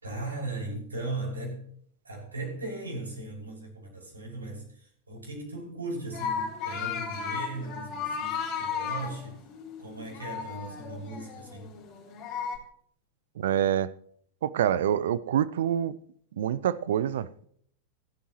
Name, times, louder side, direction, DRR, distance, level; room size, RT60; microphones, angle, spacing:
voice 1, 0.0-1.6 2.0-9.4 9.8-11.7, right 2 dB, 80° right, 5.8 m, -38 dB
sound 1, 6.1-12.6, left 6 dB, 40° left, 3.5 m, -35 dB
voice 2, 13.4-13.9 14.4-15.9 16.4-17.5, right 10 dB, 60° right, 0.6 m, -26 dB
25.5 x 9.1 x 3.1 m
figure-of-eight pair, 90°, 0 cm